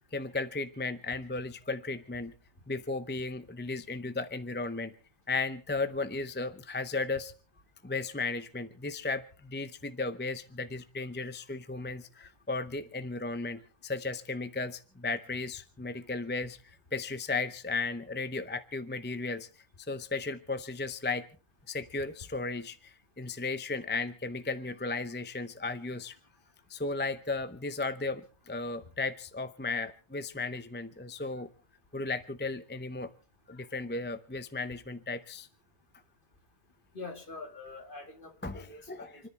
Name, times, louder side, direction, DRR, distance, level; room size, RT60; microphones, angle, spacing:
voice 1, 0.1-2.3 2.7-4.9 5.3-7.3 7.8-19.5 19.8-21.2 21.7-26.2 26.7-31.5 31.9-33.1 33.5-35.5 38.4-39.3, left 3 dB, 10° left, 11 dB, 0.5 m, -35 dB
voice 2, 36.9-39.3, left 3 dB, 40° left, 5 dB, 2.3 m, -45 dB
29.0 x 10.5 x 3.4 m, 0.38 s
omnidirectional pair, 1.4 m